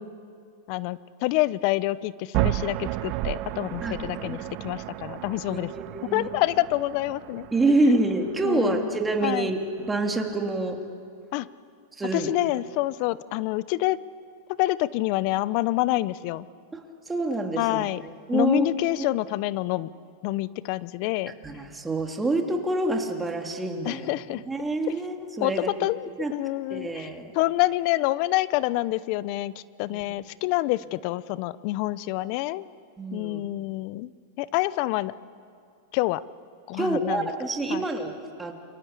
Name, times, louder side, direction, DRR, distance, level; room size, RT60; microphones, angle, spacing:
voice 1, 0.7-5.7 6.1-7.5 8.4-9.5 11.3-11.5 12.1-14.0 14.6-16.5 17.6-18.0 18.3-19.9 20.2-21.3 23.8-24.4 25.4-27.1 27.3-29.5 29.8-32.7 33.1-34.1 34.4-35.1 35.9-36.2 36.7-37.3 37.7-37.8, left 17 dB, 50° left, 18 dB, 0.7 m, -27 dB
sound 1, 2.3-10.3, right 16 dB, 45° right, 0.9 m, -33 dB
voice 2, 3.8-4.4 5.5-6.3 7.5-9.6 9.9-10.8 12.0-12.3 16.7-17.8 18.3-18.6 19.0-19.1 21.4-24.1 24.5-25.7 26.2-26.3 26.7-27.2 29.9-30.0 33.0-33.4 36.8-38.5, right 2 dB, 10° right, 3 dB, 2.9 m, -27 dB
28.5 x 24.0 x 8.4 m, 2.3 s
hypercardioid pair, 125°, 0 cm